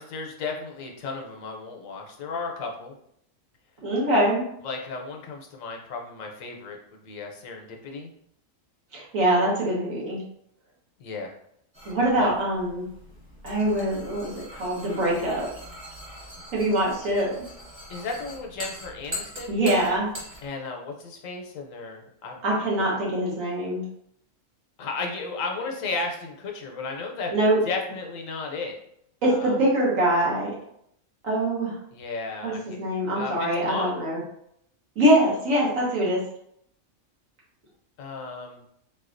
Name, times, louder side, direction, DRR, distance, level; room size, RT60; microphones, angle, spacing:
voice 1, 0.0-2.9 4.6-8.1 11.0-11.3 12.0-12.3 17.9-19.6 20.4-22.4 24.8-27.3 27.6-28.8 29.3-29.6 31.9-32.8 33.2-34.0 38.0-38.6, left 4 dB, 80° left, 2 dB, 1.0 m, -34 dB
voice 2, 3.8-4.5 8.9-10.2 11.8-12.9 13.4-15.5 16.5-17.3 19.5-20.1 22.4-23.8 27.3-27.6 29.2-30.5 31.2-31.8 32.4-34.2 34.9-36.2, right 1 dB, 80° right, -5 dB, 1.6 m, -23 dB
sound 1, 11.7-20.5, left 1 dB, 25° right, 1.0 m, -42 dB
4.0 x 2.3 x 2.5 m, 0.71 s
omnidirectional pair, 1.4 m